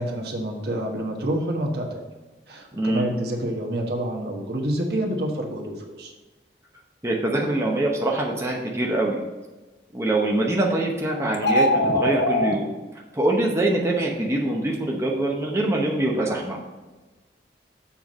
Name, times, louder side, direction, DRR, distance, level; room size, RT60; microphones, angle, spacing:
voice 1, 0.0-2.0 2.5-6.1, right 1 dB, 60° right, 1 dB, 1.3 m, -28 dB
voice 2, 2.7-3.1 7.0-9.2 9.9-16.6, right 1 dB, 15° right, -2 dB, 0.9 m, -24 dB
sound 1, 11.3-12.5, left 1 dB, 75° left, 0.8 m, -21 dB
7.3 x 4.6 x 5.2 m, 1.2 s
head